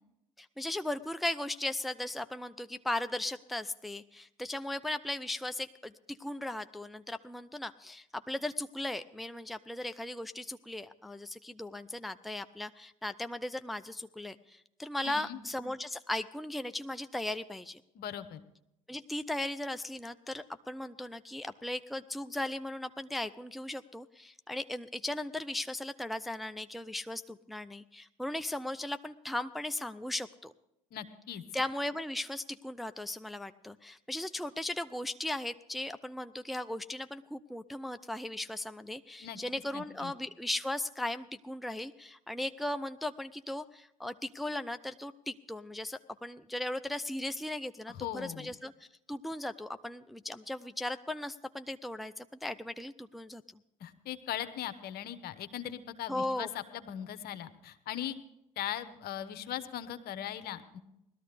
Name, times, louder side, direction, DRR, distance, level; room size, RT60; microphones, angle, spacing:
voice 1, 0.4-17.8 18.9-30.5 31.5-53.4 56.1-56.5, left 1 dB, ahead, 10 dB, 0.5 m, -37 dB
voice 2, 15.0-15.4 17.9-18.4 30.9-31.4 39.2-39.4 39.7-40.1 47.9-48.5 53.8-58.2 58.6-60.8, left 11 dB, 60° left, 12 dB, 1.0 m, -39 dB
18.5 x 13.0 x 3.4 m, 0.84 s
hypercardioid pair, 60°, 18 cm